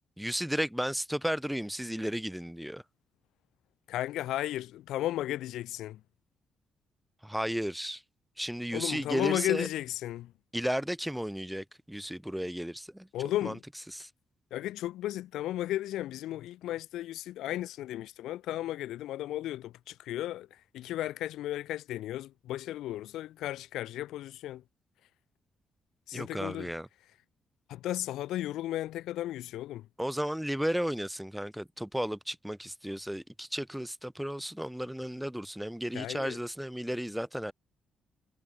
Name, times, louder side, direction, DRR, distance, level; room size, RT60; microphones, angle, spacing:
voice 1, 0.2-2.8 7.2-8.0 8.4-9.7 10.5-13.1 13.4-13.5 13.9-14.1 26.1-26.9 30.0-37.5, equal, 5° right, 7.2 m, -34 dB
voice 2, 3.9-6.0 8.7-10.3 13.1-13.6 14.5-24.6 26.1-26.7 27.7-29.9 35.9-36.4, left 14 dB, 90° left, 4.5 m, -34 dB
cardioid pair, 85°, 0 cm